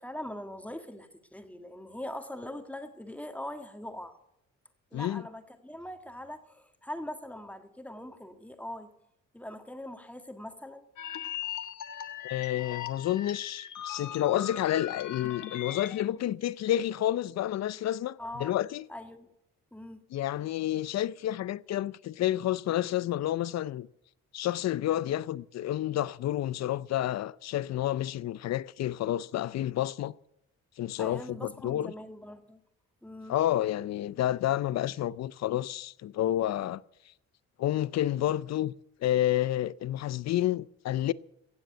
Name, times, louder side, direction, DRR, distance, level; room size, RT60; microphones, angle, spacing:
voice 1, 0.0-4.2 4.9-8.9 9.3-10.9 18.2-18.6 18.9-19.3 19.7-20.0 31.0-32.6 33.0-33.4, left 1 dB, 5° left, 1.7 m, -42 dB
voice 2, 4.9-5.2 12.2-18.9 20.1-23.9 24.3-30.1 30.8-31.9 33.3-36.8 37.6-38.7 39.0-41.1, left 13 dB, 60° left, 0.6 m, -30 dB
sound 1, 11.0-16.0, left 10 dB, 80° left, 1.4 m, -39 dB
16.5 x 7.8 x 8.0 m
cardioid pair, 90°, 30 cm